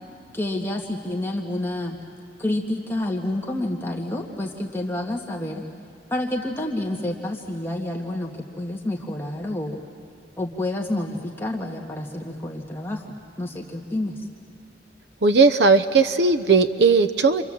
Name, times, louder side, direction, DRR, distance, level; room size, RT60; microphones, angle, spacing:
voice 1, 0.3-2.0 2.4-5.6 6.1-9.8 10.4-13.1 13.4-14.3, left 1 dB, 15° left, 0 dB, 1.6 m, -29 dB
voice 2, 15.2-17.4, right 4 dB, 70° right, 11 dB, 0.8 m, -17 dB
29.5 x 26.5 x 7.6 m, 2.5 s
head